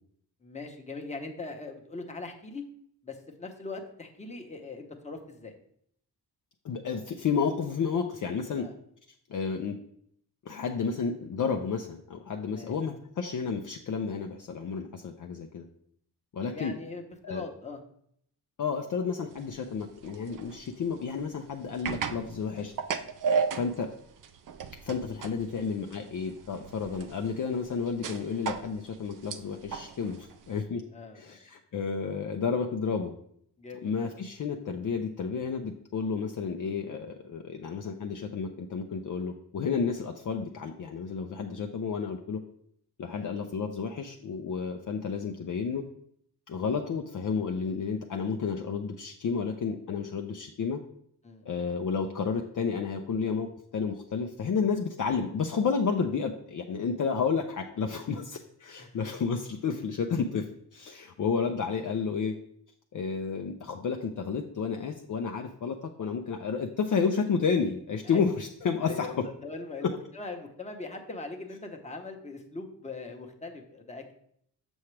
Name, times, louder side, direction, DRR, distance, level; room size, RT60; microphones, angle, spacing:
voice 1, 0.4-2.6 3.0-5.5 8.6-8.7 12.5-12.7 16.5-17.8 30.9-31.4 33.6-33.9 43.1-43.3 51.2-51.4 58.1-58.2 58.8-59.0 68.1-68.2 68.8-74.1, left 3 dB, 15° left, 3 dB, 0.9 m, -41 dB
voice 2, 6.6-8.7 9.3-9.8 10.5-15.7 16.3-16.7 17.2-17.4 18.6-22.7 23.6-23.9 24.8-30.8 31.2-33.1 33.8-42.4 43.0-45.8 46.5-50.8 51.5-53.5 53.7-60.5 60.7-62.4 62.9-69.2 69.8-69.9, left 5 dB, 50° left, 3 dB, 0.5 m, -31 dB
sound 1, 19.3-30.6, right 6 dB, 50° right, 0.5 m, -36 dB
7.1 x 5.8 x 3.2 m, 0.68 s
wide cardioid pair, 115°, 41 cm